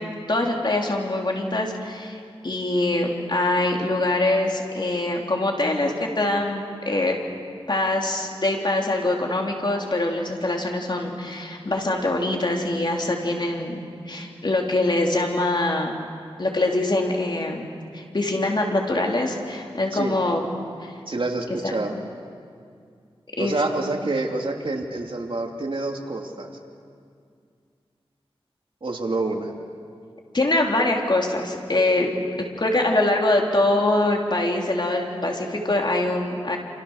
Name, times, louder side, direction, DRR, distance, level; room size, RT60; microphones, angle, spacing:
voice 1, 0.0-7.2 7.7-13.8 14.1-16.0 16.4-17.7 17.9-20.4 20.8-20.9 21.5-21.7 23.4-23.6 30.3-32.1 32.4-36.6, left 2 dB, 50° left, 0 dB, 3.7 m, -24 dB
voice 2, 21.1-21.9 23.4-26.5 28.8-29.5, right 2 dB, 60° right, 1 dB, 2.8 m, -27 dB
28.5 x 28.5 x 6.6 m, 2.2 s
wide cardioid pair, 75°, 10 cm